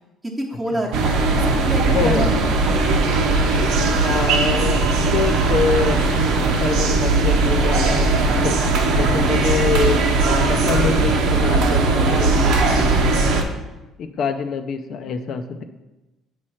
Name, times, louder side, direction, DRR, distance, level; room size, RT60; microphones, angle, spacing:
voice 1, 0.4-2.8, right 1 dB, 10° right, -3 dB, 1.0 m, -27 dB
sound 1, 0.9-13.4, right 3 dB, 80° right, 0.9 m, -18 dB
voice 2, 1.9-2.4 4.0-4.8 5.1-6.1 6.4-13.4 14.0-15.6, left 6 dB, 55° left, 8 dB, 0.6 m, -25 dB
8.5 x 3.2 x 5.6 m, 1.0 s
cardioid pair, 140°, 0 cm